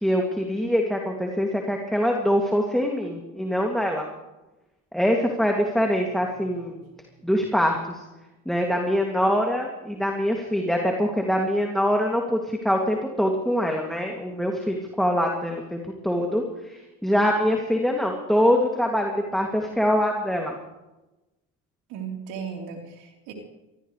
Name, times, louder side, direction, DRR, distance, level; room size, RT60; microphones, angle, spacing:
voice 1, 0.0-4.1 4.9-6.8 7.2-8.0 8.5-16.4 17.0-20.6, equal, ahead, 1 dB, 2.6 m, -24 dB
voice 2, 21.9-23.3, right 6 dB, 80° right, 1 dB, 4.1 m, -36 dB
24.5 x 16.5 x 3.4 m, 1.0 s
supercardioid pair, 70°, 37 cm